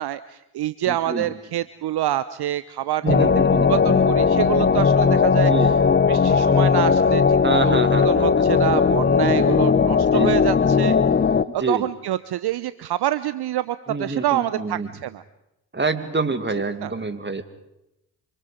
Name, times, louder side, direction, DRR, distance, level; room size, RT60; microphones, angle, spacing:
voice 1, 0.0-3.3 3.7-5.5 6.1-11.0 11.5-15.2 16.8-16.9, right 13 dB, 55° right, 15 dB, 0.9 m, -26 dB
voice 2, 0.9-1.3 3.0-4.0 5.3-5.8 7.4-8.5 10.1-10.4 11.5-11.9 13.9-14.9 15.7-17.4, right 3 dB, 20° right, 10 dB, 2.3 m, -27 dB
sound 1, 3.1-11.4, left 5 dB, 20° left, 0.9 m, -18 dB
26.5 x 25.0 x 5.1 m, 0.88 s
hypercardioid pair, 45°, 48 cm